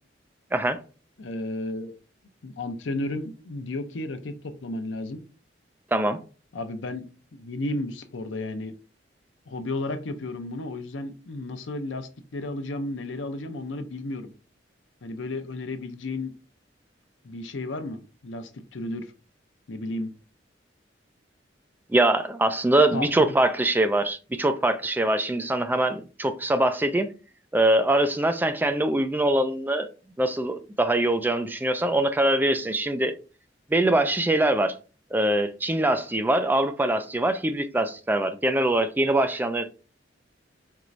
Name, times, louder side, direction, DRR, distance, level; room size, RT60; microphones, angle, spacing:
voice 1, 1.2-1.9 2.4-5.2 6.5-7.1 7.3-8.7 9.5-14.3 15.0-16.3 17.2-19.1 19.7-20.1 22.9-23.3, left 2 dB, 90° left, 0.6 m, -33 dB
voice 2, 21.9-27.1 27.5-29.9 30.2-33.2 33.7-34.7 35.1-39.7, right 1 dB, 10° right, 0.3 m, -23 dB
4.5 x 3.0 x 2.6 m
head